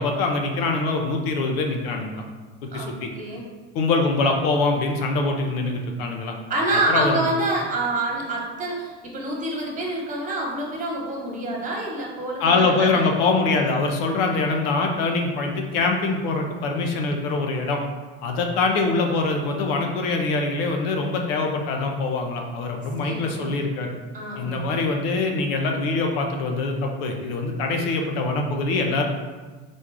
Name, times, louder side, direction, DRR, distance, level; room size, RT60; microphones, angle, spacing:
voice 1, 0.0-2.2 2.6-3.1 3.7-6.3 6.9-7.2 12.4-17.8 18.2-23.9 24.4-29.0, left 3 dB, 85° left, 2 dB, 0.8 m, -24 dB
voice 2, 2.7-3.4 6.5-13.0 23.0-23.5 24.1-24.7, right 2 dB, 25° right, -2 dB, 1.2 m, -27 dB
4.3 x 2.4 x 4.7 m, 1.3 s
supercardioid pair, 105°, 29 cm